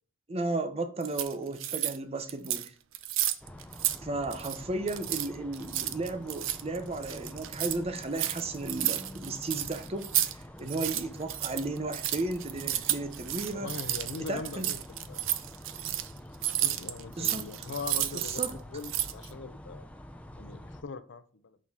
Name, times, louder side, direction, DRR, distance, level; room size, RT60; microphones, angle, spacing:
voice 1, 0.3-2.7 4.0-10.1 10.6-13.7 14.3-14.7 17.2-17.5 18.1-18.6, right 2 dB, 30° right, 0.6 m, -34 dB
sound 1, 1.0-2.0 2.3-2.7 2.9-4.0 4.2-4.6 4.9-10.3 10.6-18.5 18.8-19.3, right 13 dB, 75° right, 0.5 m, -32 dB
sound 2, 3.4-20.8, left 1 dB, 5° left, 0.4 m, -47 dB
voice 2, 13.5-15.2 16.4-19.9 20.4-21.6, left 4 dB, 60° left, 0.5 m, -41 dB
6.2 x 3.7 x 4.1 m
head